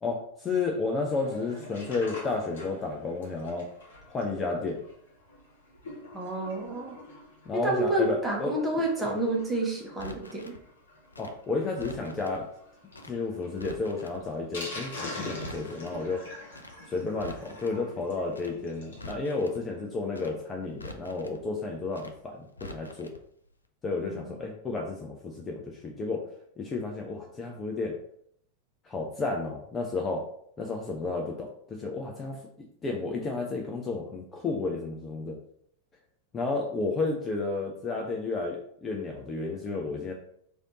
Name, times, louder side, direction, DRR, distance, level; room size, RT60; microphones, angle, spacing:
voice 1, 0.0-3.7 4.1-4.8 7.5-8.5 11.2-12.4 13.0-16.2 16.9-23.1 23.8-26.2 26.6-27.9 28.8-30.2 30.6-32.4 32.8-35.4 36.3-40.1, left 3 dB, 20° left, 0 dB, 0.5 m, -32 dB
Sink (filling or washing), 1.1-19.1 19.5-19.6 19.7-19.8 20.2-20.3, left 2 dB, 60° left, 1.2 m, -45 dB
voice 2, 6.1-6.9 7.5-10.5 24.0-24.4, right 1 dB, 10° right, -2 dB, 1.1 m, -29 dB
Crackle, 10.0-10.6 11.1-12.4 12.9-13.2 13.4-14.2 14.7-15.0 15.2-16.0 16.5-16.8 17.1-17.8 18.3-18.6 18.9-19.6 20.1-20.4 20.7-21.4 21.9-22.2 22.5-23.2 23.4-23.6, left 1 dB, 80° left, 0.4 m, -45 dB
3.3 x 2.6 x 4.0 m, 0.68 s
figure-of-eight pair, 90°, 0 cm